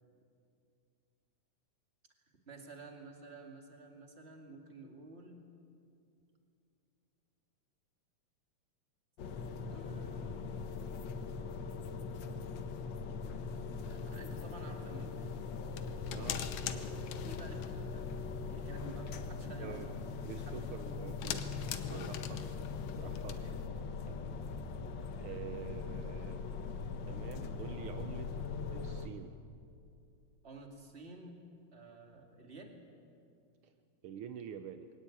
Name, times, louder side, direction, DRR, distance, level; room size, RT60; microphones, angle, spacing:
voice 1, 2.3-5.5 9.7-10.5 13.8-15.3 17.2-18.1 18.5-20.0 20.4-20.7 21.9-22.1 23.0-23.6 24.0-24.2 30.4-32.8, right 2 dB, 25° right, 3 dB, 2.2 m, -52 dB
sound 1, 9.2-29.1, left 4 dB, 60° left, 1.2 m, -41 dB
sound 2, 13.8-23.7, left 9 dB, 80° left, 2.4 m, -45 dB
voice 2, 16.1-16.4 19.6-19.9 20.2-21.6 21.9-22.5 22.9-23.4 25.2-26.4 27.1-28.3 28.7-29.3 33.6-33.7 34.0-34.9, right 9 dB, 80° right, 8 dB, 1.2 m, -47 dB
22.0 x 18.5 x 8.5 m, 2.5 s
omnidirectional pair, 3.3 m